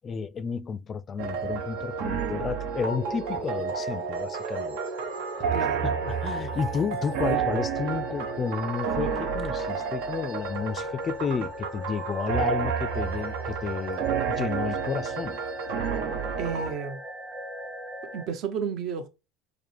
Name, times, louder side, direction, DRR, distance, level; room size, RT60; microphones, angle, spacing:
voice 1, 0.0-4.8 5.4-5.5 5.8-15.4, left 6 dB, 30° left, 0.4 m, -32 dB
sound 1, 1.2-16.7, right 7 dB, 85° right, 0.8 m, -31 dB
sound 2, 2.7-18.3, left 1 dB, 20° right, 1.1 m, -39 dB
voice 2, 5.5-5.9 16.4-17.0 18.1-19.1, right 6 dB, 55° right, 0.8 m, -32 dB
4.8 x 2.1 x 3.3 m
supercardioid pair, 115°, 0 cm